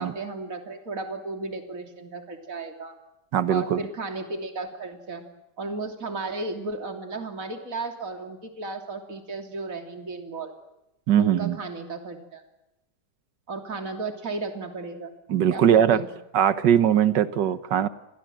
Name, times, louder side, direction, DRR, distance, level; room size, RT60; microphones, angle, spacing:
voice 1, 0.0-2.9 3.5-5.3 5.6-10.5 11.2-12.4 13.5-15.1 15.5-16.1, right 3 dB, 50° right, 5 dB, 3.4 m, -34 dB
voice 2, 3.3-3.8 11.1-11.6 15.3-16.0 16.3-17.9, right 9 dB, 80° right, 13 dB, 1.8 m, -20 dB
29.5 x 22.5 x 7.7 m, 0.91 s
omnidirectional pair, 1.9 m